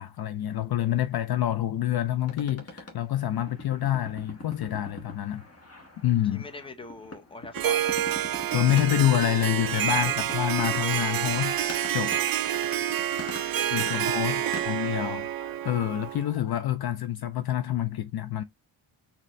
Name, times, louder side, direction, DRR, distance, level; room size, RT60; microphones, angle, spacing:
voice 1, 0.0-5.4 6.0-6.5 8.5-12.2 13.7-15.3 15.6-18.4, left 12 dB, 55° left, 0.5 m, -27 dB
sound 1, 2.3-14.7, left 2 dB, 30° left, 1.2 m, -43 dB
voice 2, 6.3-8.1 10.0-10.2 13.5-14.8, left 3 dB, 10° left, 0.7 m, -43 dB
Harp, 7.5-16.3, right 12 dB, 50° right, 0.5 m, -28 dB
sound 2, 10.6-16.6, left 3 dB, 80° left, 1.6 m, -51 dB
4.1 x 2.9 x 3.1 m
cardioid pair, 105°, 47 cm